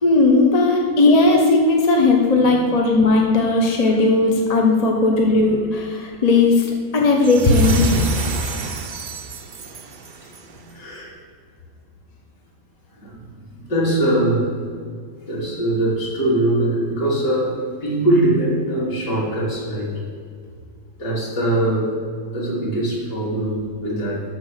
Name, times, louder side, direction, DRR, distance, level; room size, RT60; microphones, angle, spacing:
voice 1, 0.0-6.7 6.9-7.8, left 3 dB, 30° left, 1 dB, 0.8 m, -16 dB
sound 1, 7.2-10.6, right 4 dB, 65° right, 0.4 m, -27 dB
voice 2, 10.4-11.1 13.0-14.7 15.2-20.0 21.0-22.0 22.3-24.2, right 1 dB, 75° left, -7 dB, 3.4 m, -22 dB
12.5 x 4.7 x 6.5 m, 2.1 s
omnidirectional pair, 1.8 m